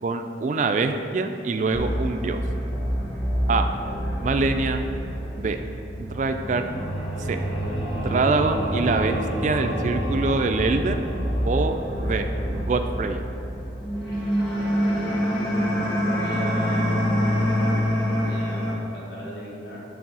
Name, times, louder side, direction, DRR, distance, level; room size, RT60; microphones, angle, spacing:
voice 1, 0.0-2.4 3.5-3.7 4.2-4.8 5.4-5.6 6.0-6.6 7.2-7.4 7.9-11.1 11.5-13.2, right 3 dB, 45° right, 6 dB, 0.3 m, -25 dB
sound 1, 1.7-18.7, equal, 25° left, 1.1 m, -26 dB
voice 2, 14.5-14.9 16.1-17.0 18.2-19.8, equal, 65° left, -5 dB, 1.4 m, -39 dB
7.2 x 3.2 x 6.1 m, 2.9 s
head